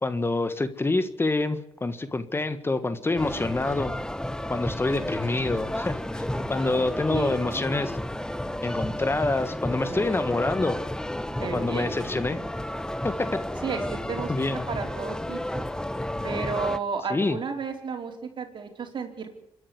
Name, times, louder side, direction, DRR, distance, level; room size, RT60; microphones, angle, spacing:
voice 1, 0.0-3.9 4.5-8.0 8.6-10.8 11.5-12.4 13.0-13.4 14.3-14.7 17.1-17.4, left 2 dB, 25° left, 11 dB, 1.6 m, -27 dB
sound 1, 3.2-16.8, left 1 dB, 5° left, 1.1 m, -32 dB
voice 2, 7.1-7.4 9.9-10.4 11.4-11.9 13.6-14.3 14.7-15.7 16.2-19.3, right 5 dB, 60° right, 4 dB, 4.5 m, -33 dB
26.5 x 11.0 x 9.7 m, 0.79 s
supercardioid pair, 65°, 9 cm